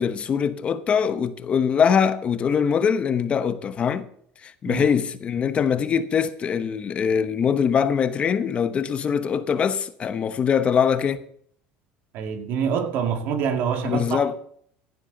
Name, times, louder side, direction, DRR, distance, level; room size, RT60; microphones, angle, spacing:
voice 1, 0.0-4.1 4.4-11.3 13.8-14.3, left 7 dB, 30° left, 0.9 m, -22 dB
voice 2, 12.1-14.2, right 7 dB, 60° right, 2.0 m, -26 dB
15.5 x 11.0 x 4.0 m
cardioid pair, 135°, 4 cm